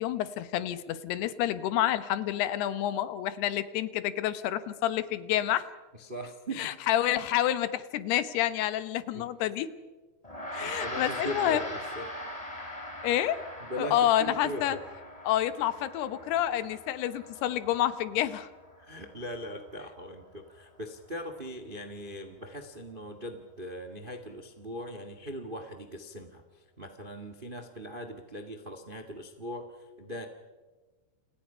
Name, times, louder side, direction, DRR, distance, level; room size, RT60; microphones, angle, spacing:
voice 1, 0.0-5.7 6.6-9.7 10.5-11.6 13.0-13.4 13.8-14.8 15.2-18.5, left 12 dB, 90° left, 13 dB, 3.2 m, -28 dB
voice 2, 5.9-6.7 9.1-9.3 10.6-12.1 13.6-14.8 18.8-30.3, equal, 55° right, 7 dB, 0.5 m, -40 dB
Gong, 10.2-19.8, left 1 dB, 10° left, 3.4 m, -41 dB
29.5 x 29.0 x 5.6 m, 1.3 s
omnidirectional pair, 4.5 m